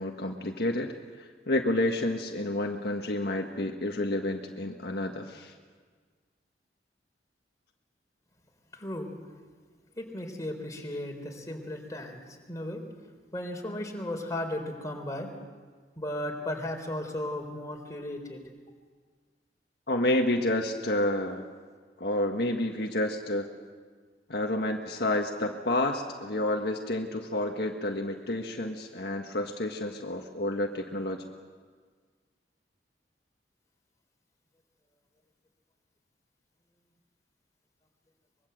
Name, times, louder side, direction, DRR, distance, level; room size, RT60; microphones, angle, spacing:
voice 1, 0.0-5.5 19.9-21.5 22.0-23.5 24.3-31.2, left 1 dB, 65° left, 2 dB, 1.7 m, -30 dB
voice 2, 8.7-9.1 10.0-12.8 13.3-15.3 16.0-18.4, left 1 dB, 20° left, 2 dB, 4.0 m, -35 dB
24.0 x 22.5 x 8.0 m, 1.5 s
head